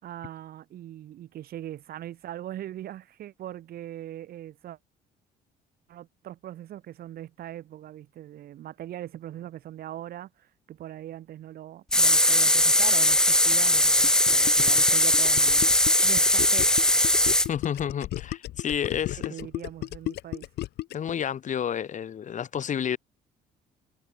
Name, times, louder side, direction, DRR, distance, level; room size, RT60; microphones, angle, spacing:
voice 1, 0.0-4.8 5.9-15.7 16.0-16.7 19.3-20.5, right 12 dB, 65° right, 3.6 m, -40 dB
sound 1, 11.9-17.5, left 1 dB, 5° left, 0.7 m, -20 dB
Gurgling, 14.0-21.1, left 15 dB, 75° left, 2.3 m, -34 dB
voice 2, 17.5-19.3 20.9-23.0, left 8 dB, 45° left, 4.5 m, -30 dB
cardioid pair, 110°, 17 cm